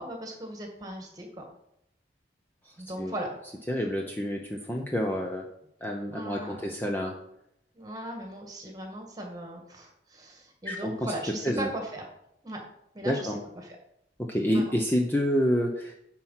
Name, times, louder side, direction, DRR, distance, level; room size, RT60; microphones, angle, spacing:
voice 1, 0.0-1.4 2.8-3.3 6.1-6.6 7.7-12.1 12.4-12.6 12.9-13.8 14.5-14.7, right 1 dB, 20° right, 2 dB, 1.8 m, -38 dB
voice 2, 3.7-5.4 5.8-7.2 10.7-11.1 11.4-11.7 13.0-13.4 14.3-15.9, equal, 10° left, 0 dB, 0.7 m, -28 dB
10.0 x 4.5 x 5.7 m, 0.78 s
head